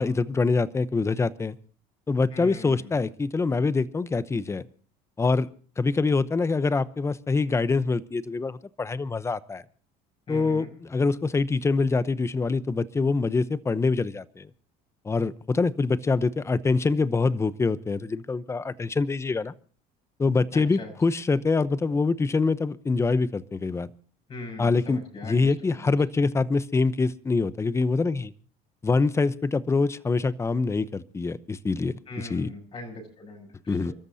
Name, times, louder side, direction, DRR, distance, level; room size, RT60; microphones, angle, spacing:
voice 1, 0.0-1.6 2.1-4.6 5.2-5.5 5.8-9.6 10.3-14.5 15.0-19.5 20.2-23.9 24.6-28.3 28.8-32.5 33.7-33.9, left 4 dB, 15° left, 16 dB, 0.8 m, -25 dB
voice 2, 2.3-2.9 10.3-10.7 20.5-20.9 24.3-25.9 32.1-33.9, left 2 dB, 35° left, 0 dB, 6.9 m, -40 dB
29.5 x 13.5 x 2.7 m, 0.43 s
cardioid pair, 125°, 18 cm